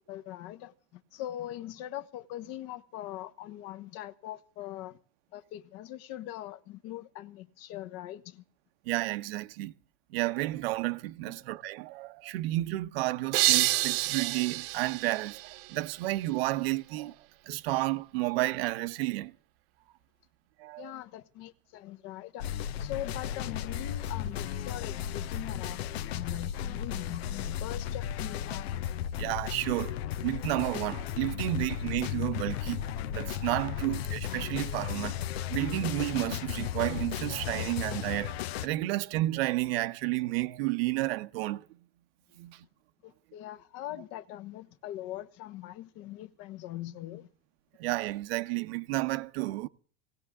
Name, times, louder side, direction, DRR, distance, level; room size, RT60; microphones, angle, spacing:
voice 1, 0.1-5.0 5.3-8.4 20.8-22.5 22.8-28.8 43.0-47.3, left 13 dB, 50° left, 1.4 m, -41 dB
voice 2, 8.8-9.7 10.1-17.2 17.4-19.3 20.6-20.9 29.2-35.2 35.5-41.6 42.4-42.6 47.8-49.7, right 18 dB, 70° right, 1.1 m, -31 dB
sound 1, 13.3-16.1, right 17 dB, 50° right, 1.1 m, -28 dB
sound 2, 22.4-38.7, left 10 dB, 80° left, 0.9 m, -35 dB
19.0 x 17.5 x 3.6 m
supercardioid pair, 135°, 31 cm